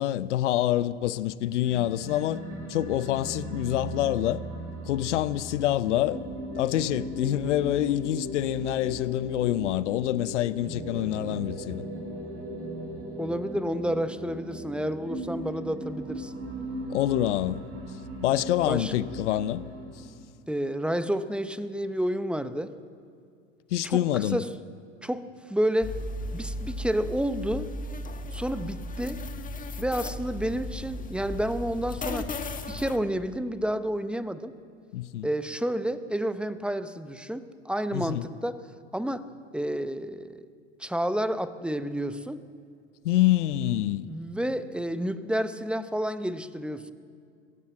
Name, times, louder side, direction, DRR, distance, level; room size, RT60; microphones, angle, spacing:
voice 1, 0.0-2.4 2.7-4.4 4.9-6.2 6.5-11.8 16.9-17.7 18.2-19.6 23.7-24.5 34.9-35.3 37.9-38.3 43.0-44.1, left 13 dB, 70° left, 0.8 m, -26 dB
sound 1, 1.6-20.2, right 1 dB, 40° right, 4.8 m, -38 dB
voice 2, 13.2-16.3 18.7-18.9 20.5-22.7 23.8-24.5 25.0-26.0 26.3-27.7 28.3-29.2 29.8-34.5 35.2-39.3 39.5-40.5 40.8-42.4 43.9-46.9, equal, 5° right, 0.9 m, -30 dB
sound 2, 25.8-33.0, left 2 dB, 20° left, 1.5 m, -36 dB
21.5 x 16.5 x 7.8 m
hypercardioid pair, 85°, 37 cm